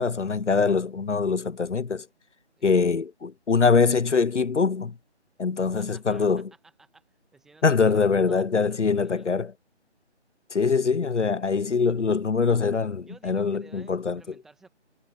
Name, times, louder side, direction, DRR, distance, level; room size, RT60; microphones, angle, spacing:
voice 1, 0.0-2.1 2.6-4.9 5.4-6.5 7.6-9.5 10.5-14.2, left 5 dB, 85° left, 0.8 m, -23 dB
voice 2, 2.6-2.9 5.7-6.4 6.8-7.0 7.3-9.3 13.0-14.7, right 3 dB, ahead, 1.3 m, -54 dB
figure-of-eight pair, 155°, 35 cm